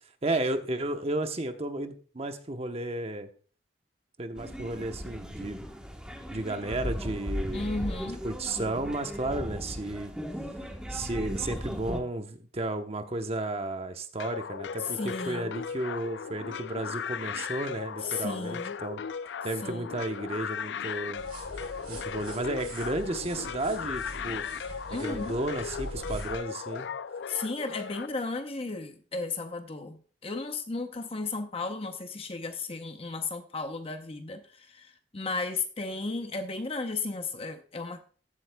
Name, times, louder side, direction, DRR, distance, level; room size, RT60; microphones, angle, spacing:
voice 1, 0.2-3.3 4.2-5.6 6.3-7.7 8.2-10.1 10.9-19.0 19.4-21.2 21.9-24.4 24.9-26.9, right 2 dB, 35° right, 0.9 m, -33 dB
sound 1, 4.4-12.0, equal, 5° right, 1.1 m, -37 dB
voice 2, 7.5-8.2 14.9-15.5 18.0-18.8 19.6-19.9 24.9-25.4 27.3-38.0, left 3 dB, 35° left, 0.7 m, -34 dB
sound 2, 14.2-28.1, left 6 dB, 80° left, 0.4 m, -37 dB
sound 3, 21.2-26.4, right 1 dB, 55° right, 3.3 m, -43 dB
15.0 x 8.0 x 2.2 m
head